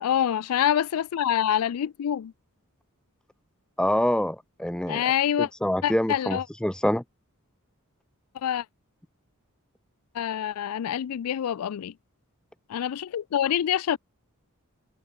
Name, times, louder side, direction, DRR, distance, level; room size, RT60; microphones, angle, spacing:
voice 1, 0.0-2.3 4.9-5.5 5.8-6.5 8.4-8.7 10.1-11.9 12.7-14.0, left 9 dB, 85° left, 0.4 m, -26 dB
voice 2, 3.8-5.0 5.6-7.0, left 1 dB, 5° left, 0.6 m, -25 dB
head